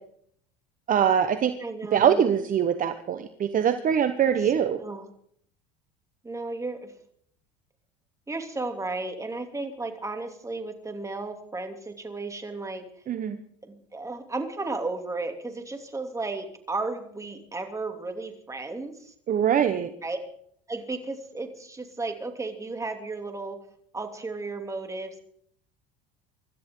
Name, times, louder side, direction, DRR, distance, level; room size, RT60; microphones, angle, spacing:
voice 1, 0.9-1.5 1.9-4.8 13.1-13.4 19.3-19.9, right 8 dB, 40° right, 9 dB, 1.1 m, -23 dB
voice 2, 1.6-2.3 4.3-4.4 4.8-5.0 6.2-6.9 8.3-12.8 13.6-19.1 20.0-20.2 20.7-23.6 23.9-25.2, right 3 dB, 15° right, 5 dB, 3.0 m, -34 dB
25.5 x 13.5 x 3.9 m, 0.64 s
supercardioid pair, 100°, 21 cm